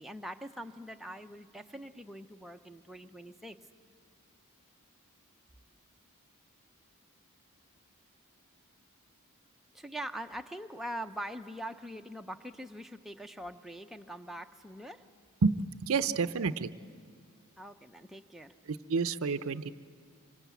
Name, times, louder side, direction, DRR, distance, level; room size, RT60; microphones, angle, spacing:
voice 1, 0.0-3.6 9.7-15.1 17.6-18.5, right 1 dB, ahead, 4 dB, 0.6 m, -43 dB
voice 2, 15.4-16.7 18.7-19.7, right 4 dB, 65° right, 12 dB, 0.6 m, -29 dB
25.5 x 25.5 x 8.3 m, 2.2 s
head